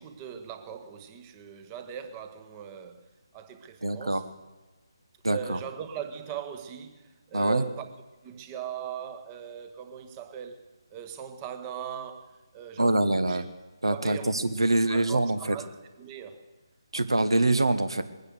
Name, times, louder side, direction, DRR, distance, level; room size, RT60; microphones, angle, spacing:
voice 1, 0.0-3.0 3.3-4.3 5.3-7.9 8.2-10.6 10.9-13.4 13.9-14.4 14.9-15.7 16.0-16.4, right 8 dB, 20° right, 1.0 m, -40 dB
voice 2, 3.8-4.2 5.2-5.6 7.3-7.7 12.8-13.4 13.8-15.6 16.9-18.0, right 2 dB, 75° right, 1.3 m, -24 dB
21.0 x 9.6 x 6.7 m
figure-of-eight pair, 150°, 3 cm